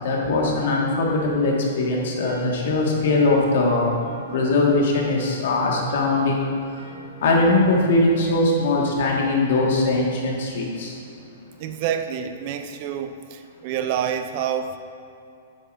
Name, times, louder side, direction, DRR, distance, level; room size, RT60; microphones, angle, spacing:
voice 1, 0.0-3.9 4.3-6.5 6.9-11.0, left 2 dB, 60° left, -2 dB, 1.7 m, -21 dB
sound 1, 2.2-7.1, right 3 dB, 75° right, 1.7 m, -45 dB
voice 2, 11.6-14.8, right 8 dB, 35° right, 8 dB, 0.4 m, -27 dB
8.8 x 8.6 x 2.6 m, 2.6 s
hypercardioid pair, 165°, 0 cm